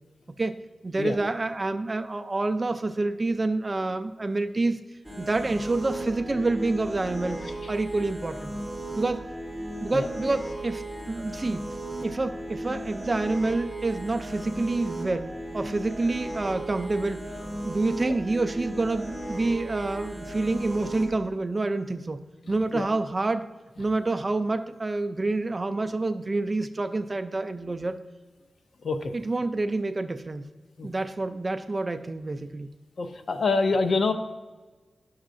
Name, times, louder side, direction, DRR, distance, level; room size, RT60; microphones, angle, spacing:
voice 1, 0.4-4.8 5.2-8.5 9.0-9.3 9.8-11.7 12.0-17.3 17.6-22.2 22.5-23.5 23.8-28.0 29.1-30.4 30.8-32.7, right 2 dB, 30° right, 10 dB, 0.3 m, -28 dB
sound 1, 5.0-21.1, right 1 dB, 10° left, 1.9 m, -36 dB
voice 2, 33.0-34.1, left 3 dB, 65° left, 8 dB, 0.5 m, -25 dB
11.0 x 6.3 x 2.5 m, 1.3 s
wide cardioid pair, 125°, 0 cm